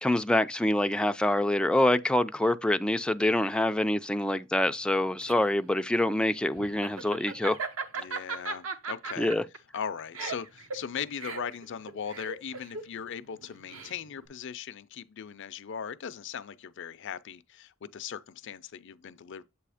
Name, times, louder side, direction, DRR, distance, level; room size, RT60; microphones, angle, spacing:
voice 1, 0.0-7.6 9.2-9.4, left 1 dB, 5° left, 0.3 m, -26 dB
Laughter, 4.8-14.2, right 4 dB, 70° right, 1.0 m, -38 dB
voice 2, 7.9-9.3 9.7-19.4, left 7 dB, 60° left, 0.5 m, -39 dB
7.7 x 2.8 x 4.9 m
head